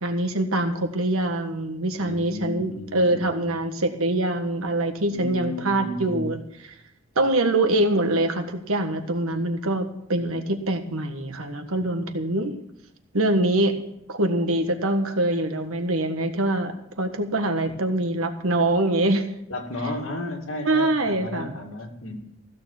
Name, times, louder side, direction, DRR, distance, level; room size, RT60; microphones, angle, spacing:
voice 1, 0.0-6.4 7.1-12.5 13.1-13.8 14.1-19.3 20.6-21.5, right 1 dB, 85° right, 7 dB, 1.5 m, -24 dB
voice 2, 2.0-3.6 5.1-6.3 9.2-9.4 11.7-11.9 19.5-22.2, left 1 dB, 75° left, 3 dB, 2.2 m, -34 dB
15.5 x 6.9 x 7.2 m, 0.76 s
head